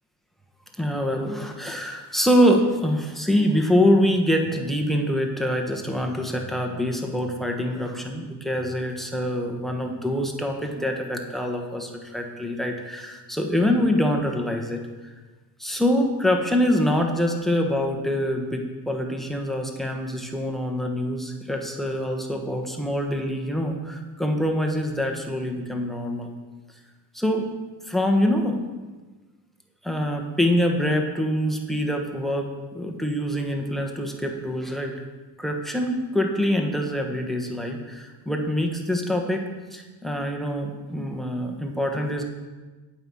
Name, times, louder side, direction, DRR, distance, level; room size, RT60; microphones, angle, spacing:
voice 1, 0.8-15.1 15.6-26.3 27.1-27.5 27.9-28.6 29.8-34.9 35.4-42.2, equal, ahead, 3 dB, 1.3 m, -25 dB
8.9 x 5.7 x 7.0 m, 1.3 s
supercardioid pair, 95°, 49 cm